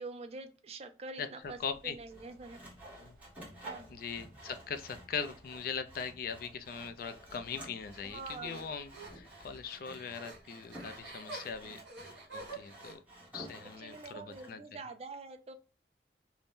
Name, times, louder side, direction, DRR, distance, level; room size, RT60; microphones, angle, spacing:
voice 1, 0.0-2.6 3.6-3.9 8.0-8.6 11.6-12.0 13.8-15.5, right 3 dB, 35° right, 7 dB, 0.4 m, -46 dB
sound 1, 1.4-9.7, left 1 dB, 50° right, 0.9 m, -61 dB
voice 2, 1.6-2.0 3.0-3.2 3.9-13.0 13.3-14.6, left 6 dB, 50° left, 9 dB, 0.4 m, -41 dB
Sawing, 2.1-14.5, right 1 dB, 10° right, 0.9 m, -52 dB
sound 2, 7.9-12.9, right 3 dB, 90° right, 1.3 m, -48 dB
2.6 x 2.1 x 3.4 m, 0.35 s
head